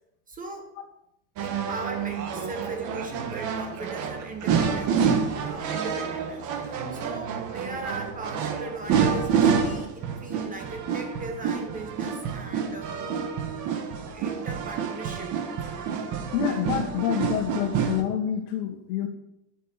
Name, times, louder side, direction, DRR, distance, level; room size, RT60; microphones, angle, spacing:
voice 1, 0.3-0.7 1.4-13.2 14.1-15.4, right 3 dB, 20° right, 5 dB, 0.9 m, -38 dB
sound 1, 1.4-18.0, right 6 dB, 40° right, 1.4 m, -28 dB
voice 2, 16.3-19.1, left 10 dB, 70° left, 1 dB, 1.7 m, -27 dB
7.8 x 6.5 x 8.2 m, 0.82 s
cardioid pair, 165°, 45 cm